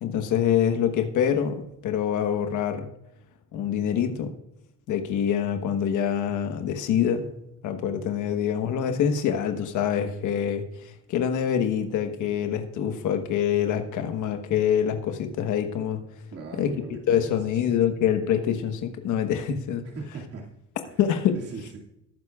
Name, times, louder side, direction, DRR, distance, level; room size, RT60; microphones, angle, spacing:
voice 1, 0.0-2.9 3.5-4.3 4.9-7.3 7.6-16.0 16.6-16.7 17.1-19.8 21.0-21.3, left 9 dB, 65° left, 6 dB, 1.3 m, -25 dB
voice 2, 16.3-17.7 19.8-20.5 20.8-21.0 21.3-21.8, right 4 dB, 45° right, -2 dB, 2.3 m, -40 dB
18.5 x 9.5 x 2.4 m, 0.82 s
cardioid pair, 110°, 32 cm